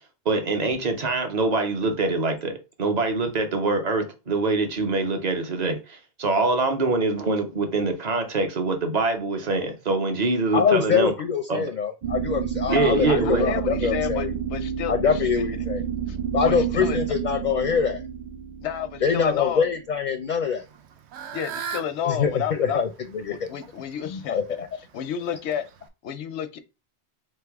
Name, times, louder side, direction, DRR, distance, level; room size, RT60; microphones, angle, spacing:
voice 1, 0.3-11.1 11.5-11.7 12.7-13.5, right 3 dB, 45° right, 0.9 m, -24 dB
voice 2, 10.5-14.3 14.9-15.8 16.3-18.0 19.0-20.6 22.0-22.9 23.1-23.5 24.0-24.7, left 7 dB, 55° left, 0.5 m, -24 dB
sound 1, 12.0-19.9, right 8 dB, 60° right, 0.4 m, -29 dB
voice 3, 12.7-15.2 16.1-16.2 16.4-17.0 18.6-19.6 21.3-22.8 23.3-24.4 24.9-25.7 26.0-26.6, left 9 dB, 90° left, 0.9 m, -31 dB
Fowl / Bird, 20.6-25.9, right 7 dB, 85° right, 0.9 m, -40 dB
3.6 x 3.3 x 3.5 m
omnidirectional pair, 1.1 m